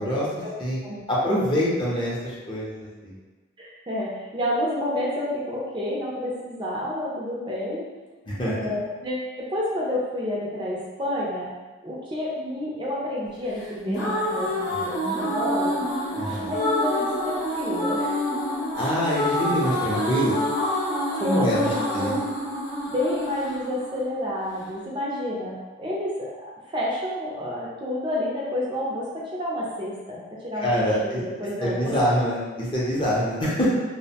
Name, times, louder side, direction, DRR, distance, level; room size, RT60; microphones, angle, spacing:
voice 1, 0.0-0.5 0.8-1.5 3.6-7.8 8.5-11.5 11.8-15.7 16.5-18.2 21.2-22.3 22.9-26.3 26.7-30.7 31.0-31.9, left 1 dB, 25° right, -6 dB, 0.4 m, -30 dB
voice 2, 1.1-3.1 8.3-8.5 14.7-14.8 16.2-16.5 18.8-20.3 21.2-22.2 30.6-31.2 31.6-33.7, equal, 25° left, -7 dB, 0.5 m, -25 dB
sound 1, 13.6-24.6, left 1 dB, 85° left, 0.8 m, -27 dB
2.5 x 2.0 x 2.7 m, 1.2 s
head